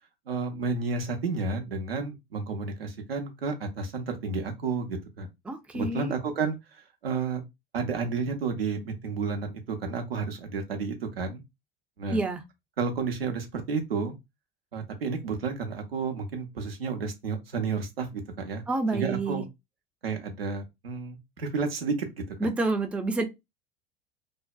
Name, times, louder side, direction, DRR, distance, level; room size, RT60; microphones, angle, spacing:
voice 1, 0.3-5.3 5.7-7.4 7.7-11.4 12.0-12.2 12.8-14.1 14.7-18.6 18.9-19.4 20.0-22.5, right 4 dB, 85° right, 0.7 m, -31 dB
voice 2, 5.5-6.1 12.1-12.4 18.7-19.4 22.4-23.2, right 2 dB, 5° right, 0.4 m, -28 dB
2.6 x 2.1 x 2.3 m
hypercardioid pair, 75°, 29 cm